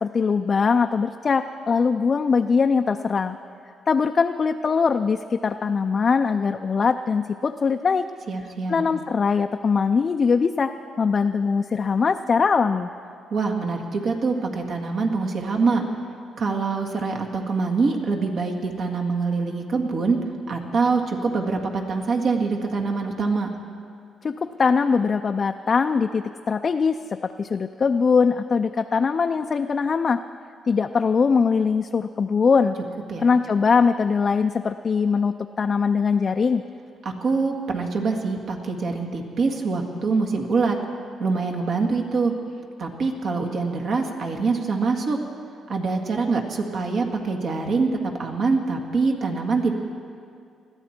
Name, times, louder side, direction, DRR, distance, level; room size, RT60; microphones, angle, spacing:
voice 1, 0.0-3.4 3.9-8.1 8.7-10.7 11.0-12.9 24.2-30.2 30.7-32.8 33.2-36.6, left 5 dB, 40° left, 6 dB, 0.4 m, -21 dB
voice 2, 8.3-8.9 13.3-15.8 16.4-20.2 20.5-23.5 33.1-33.3 37.2-40.8 41.2-42.3 42.8-45.2 45.7-49.7, right 4 dB, 60° right, 2 dB, 1.9 m, -24 dB
21.0 x 14.0 x 4.4 m, 2.4 s
cardioid pair, 90°, 0 cm